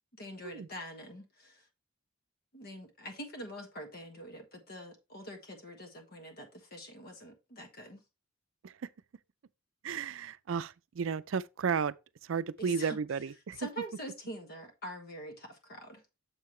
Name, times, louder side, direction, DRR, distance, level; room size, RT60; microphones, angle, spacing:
voice 1, 0.2-1.7 2.5-8.0 12.6-13.0 13.5-16.0, equal, 50° left, 1.3 m, -45 dB
voice 2, 9.8-11.9 12.2-13.6, right 6 dB, 70° right, 0.4 m, -33 dB
7.2 x 5.7 x 3.1 m
head